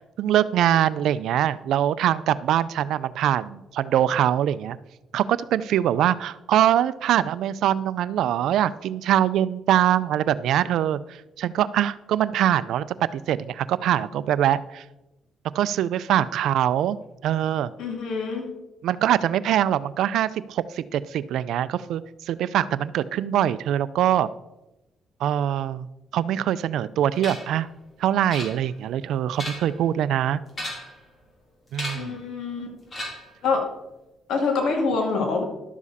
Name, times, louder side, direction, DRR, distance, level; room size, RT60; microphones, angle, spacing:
voice 1, 0.2-4.8 5.1-12.8 13.1-14.8 15.5-17.0 17.2-17.7 18.8-24.3 25.2-25.9 26.1-27.7 28.0-30.4 31.7-32.2, right 11 dB, 80° right, 17 dB, 0.4 m, -23 dB
voice 2, 17.8-18.5 31.9-32.7 33.4-33.6 34.3-35.4, left 4 dB, 75° left, 2 dB, 2.3 m, -25 dB
sound 1, 27.2-27.6 28.3-28.9 29.2-29.8 30.5-31.0 31.7-32.2 32.9-33.4, left 1 dB, 35° left, 3.4 m, -35 dB
12.0 x 7.2 x 4.2 m, 0.96 s
cardioid pair, 90°, 0 cm